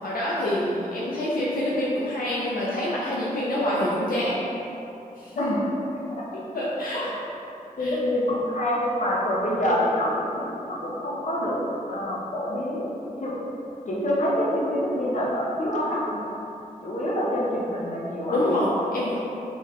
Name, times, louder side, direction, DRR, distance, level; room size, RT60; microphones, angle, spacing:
voice 1, 0.0-4.4 5.2-5.6 6.5-7.1 7.8-8.0 18.3-19.2, left 1 dB, 85° left, -6 dB, 0.5 m, -26 dB
voice 2, 5.9-6.3 6.9-7.2 7.8-11.6 11.9-13.3 13.9-16.2 16.8-18.5, equal, 55° left, -5 dB, 0.9 m, -26 dB
4.0 x 3.6 x 3.1 m, 3.0 s
wide cardioid pair, 70°, 15 cm